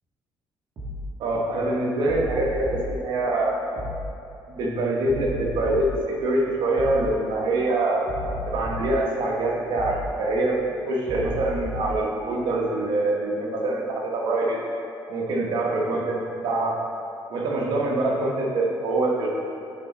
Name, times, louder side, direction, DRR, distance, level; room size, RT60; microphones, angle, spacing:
sound 1, 0.8-1.1 2.1-2.9 3.8-4.1 5.1-6.0 6.8-7.1 8.1-9.0 9.8-10.1 11.1-12.0, equal, 55° right, 1.9 m, -34 dB
voice 1, 1.2-3.6 4.5-8.1 8.5-10.6 10.9-14.6 15.1-16.8 17.3-19.4, right 2 dB, 70° right, -1 dB, 1.4 m, -24 dB
9.5 x 5.0 x 4.1 m, 2.7 s
cardioid pair, 90°, 8 cm